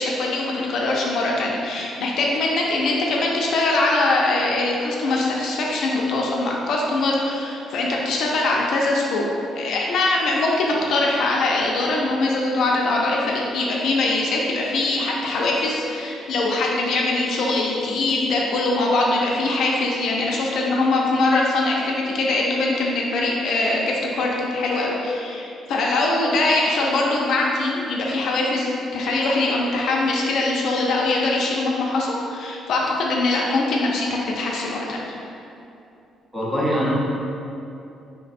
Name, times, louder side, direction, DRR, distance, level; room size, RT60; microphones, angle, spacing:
voice 1, 0.0-9.3 9.6-35.0, left 2 dB, 55° left, -2 dB, 0.4 m, -22 dB
voice 2, 36.3-36.9, equal, 5° right, -7 dB, 0.5 m, -22 dB
3.2 x 2.1 x 4.1 m, 2.7 s
cardioid pair, 170°, 0 cm